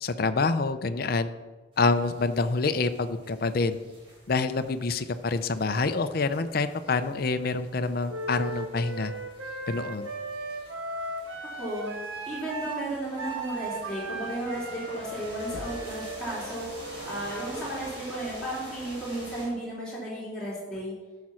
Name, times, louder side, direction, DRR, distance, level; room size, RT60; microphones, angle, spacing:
voice 1, 0.0-1.3 1.8-3.8 4.3-9.1 9.7-10.1, left 3 dB, 50° left, 9 dB, 0.5 m, -27 dB
sound 1, 1.7-19.5, equal, 25° right, 3.6 m, -48 dB
Wind instrument woodwind instrument, 8.1-17.9, right 3 dB, 85° right, 1.3 m, -37 dB
voice 2, 11.6-12.0 12.2-16.7 17.0-20.9, right 1 dB, 5° left, -8 dB, 3.3 m, -34 dB
sound 2, 15.4-16.1 17.8-17.9 19.7-19.9 20.7-20.8, left 1 dB, 80° left, 0.9 m, -44 dB
11.5 x 5.8 x 6.2 m, 1.3 s
head